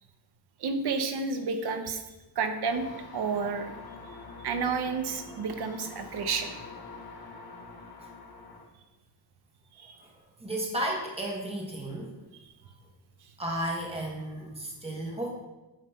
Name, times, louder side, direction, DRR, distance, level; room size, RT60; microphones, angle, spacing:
voice 1, 0.6-2.0 2.4-2.8 3.1-3.7 4.4-6.6 9.8-10.0, right 5 dB, 65° right, 7 dB, 0.8 m, -30 dB
sound 1, 2.6-8.6, left 3 dB, 55° left, 1.4 m, -45 dB
voice 2, 10.4-12.1 13.4-15.3, right 1 dB, 15° right, -1 dB, 1.4 m, -33 dB
9.1 x 3.2 x 5.5 m, 1.1 s
wide cardioid pair, 165°, 43 cm